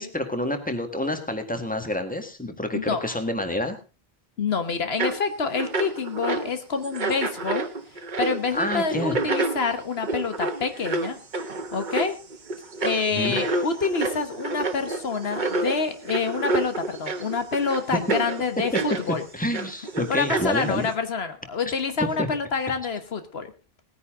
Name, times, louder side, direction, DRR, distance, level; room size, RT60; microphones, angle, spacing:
voice 1, 0.0-3.8 8.5-9.2 13.1-13.4 17.9-18.0 19.3-20.9 22.0-22.3, left 1 dB, 10° left, 6 dB, 1.8 m, -28 dB
voice 2, 2.7-3.1 4.4-7.7 8.2-11.2 11.7-12.2 12.8-19.2 20.1-23.5, left 5 dB, 80° left, 9 dB, 1.5 m, -27 dB
sound 1, 5.0-5.2 5.5-6.5 6.8-19.1 19.5-20.9, right 3 dB, 50° right, 1.2 m, -29 dB
19.0 x 9.7 x 3.7 m, 0.32 s
omnidirectional pair, 1.0 m